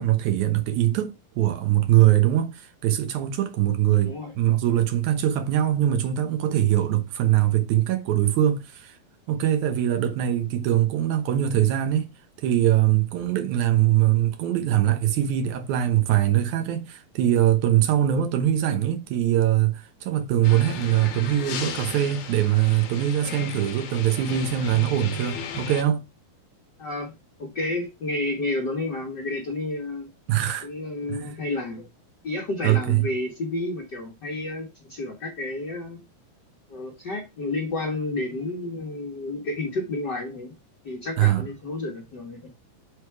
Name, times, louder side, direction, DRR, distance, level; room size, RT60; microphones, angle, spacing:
voice 1, 0.0-9.0 9.3-12.1 12.4-26.0 30.3-30.7 31.1-31.3 32.6-33.1 41.2-41.4, right 12 dB, 70° right, 2.1 m, -22 dB
voice 2, 4.0-4.3 26.8-27.1 27.4-30.1 30.6-31.9 32.2-36.0 36.7-40.5 40.8-42.5, left 2 dB, 85° left, 0.9 m, -31 dB
sound 1, 20.4-25.8, left 6 dB, 70° left, 2.0 m, -35 dB
7.7 x 3.5 x 4.7 m
omnidirectional pair, 4.1 m